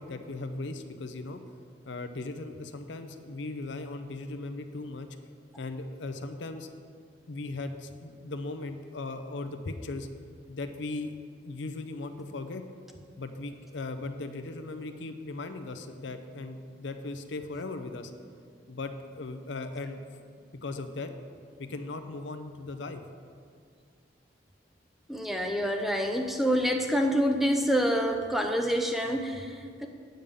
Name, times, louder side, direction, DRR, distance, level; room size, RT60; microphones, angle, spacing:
voice 1, 0.0-1.4 1.9-5.1 5.6-6.7 7.3-10.1 10.5-11.1 11.4-12.6 13.2-18.1 18.7-20.0 20.6-21.1 21.6-23.0, left 2 dB, 75° left, 8 dB, 0.6 m, -38 dB
voice 2, 25.1-29.9, equal, ahead, 3 dB, 0.6 m, -27 dB
8.9 x 5.3 x 6.8 m, 2.2 s
head